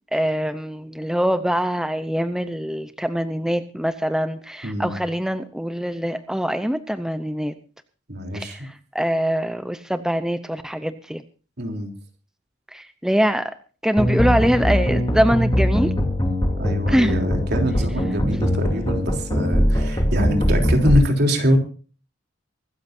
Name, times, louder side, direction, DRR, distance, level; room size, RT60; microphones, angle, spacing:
voice 1, 0.1-7.5 8.3-11.2 12.7-13.5 13.8-15.9 16.9-17.2, equal, 5° right, 10 dB, 0.7 m, -23 dB
voice 2, 4.6-5.0 8.1-8.6 11.6-11.9 16.6-21.6, equal, 60° right, 3 dB, 3.5 m, -23 dB
sound 1, 14.0-21.0, equal, 25° left, 3.1 m, -21 dB
24.5 x 13.0 x 2.7 m, 0.37 s
head